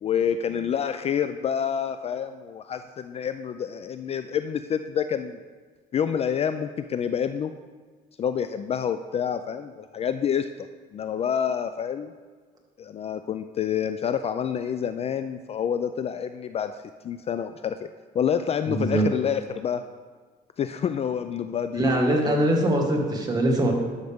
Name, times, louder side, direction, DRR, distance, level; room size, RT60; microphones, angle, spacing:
voice 1, 0.0-5.4 5.9-7.5 8.2-10.7 10.9-12.1 12.8-16.7 17.0-17.8 18.1-19.8 20.6-22.4, left 8 dB, 35° left, 9 dB, 0.4 m, -28 dB
voice 2, 18.7-19.0 21.8-23.7, right 1 dB, 25° right, 0 dB, 1.8 m, -22 dB
12.0 x 6.5 x 3.6 m, 1.5 s
cardioid pair, 110°, 17 cm